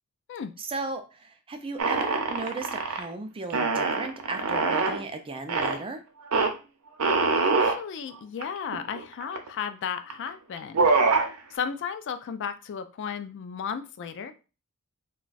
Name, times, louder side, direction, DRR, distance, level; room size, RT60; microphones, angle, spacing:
voice 1, 0.6-6.0, right 3 dB, 25° right, 6 dB, 0.4 m, -36 dB
sound 1, 1.8-3.1 3.5-5.0 5.5-5.8 6.3-6.5 7.0-7.8 8.4-8.5 8.7-9.5 10.1-10.3 10.6-11.3, right 3 dB, 80° right, 0.6 m, -24 dB
voice 2, 7.4-10.9 11.5-14.3, left 7 dB, 55° left, 10 dB, 0.3 m, -34 dB
2.3 x 2.2 x 3.9 m, 0.32 s
head